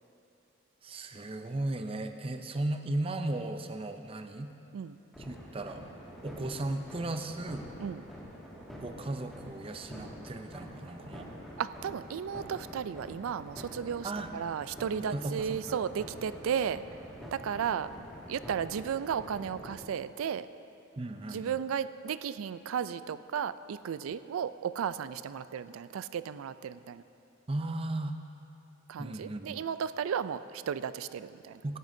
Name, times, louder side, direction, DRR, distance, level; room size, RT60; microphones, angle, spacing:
voice 1, 0.8-4.5 5.2-5.8 6.2-7.7 8.8-11.3 14.0-14.3 15.0-15.8 21.0-21.6 27.5-28.2 29.0-29.7 31.6-31.8, right 2 dB, 25° right, 7 dB, 0.5 m, -36 dB
sound 1, 5.1-19.7, equal, ahead, 2.0 m, -46 dB
voice 2, 11.6-16.8 17.3-17.9 18.3-20.5 21.3-27.0 28.9-31.6, right 7 dB, 85° right, 14 dB, 0.3 m, -34 dB
17.0 x 12.5 x 2.7 m, 2.8 s
head